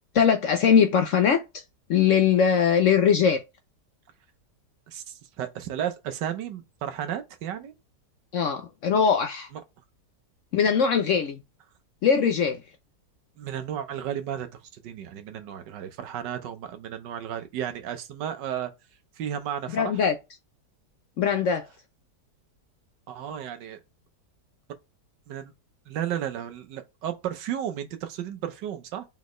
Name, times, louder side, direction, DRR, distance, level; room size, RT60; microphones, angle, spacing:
voice 1, 0.1-1.6 1.9-3.4 8.3-9.5 10.5-11.4 12.0-12.6 19.7-20.1 21.2-21.6, left 7 dB, 70° left, 0.7 m, -21 dB
voice 2, 4.9-7.8 9.5-9.6 13.4-18.7 19.2-20.0 23.1-23.8 25.3-25.5 25.9-29.1, right 10 dB, 85° right, 1.5 m, -33 dB
4.1 x 4.1 x 3.1 m
omnidirectional pair, 1.8 m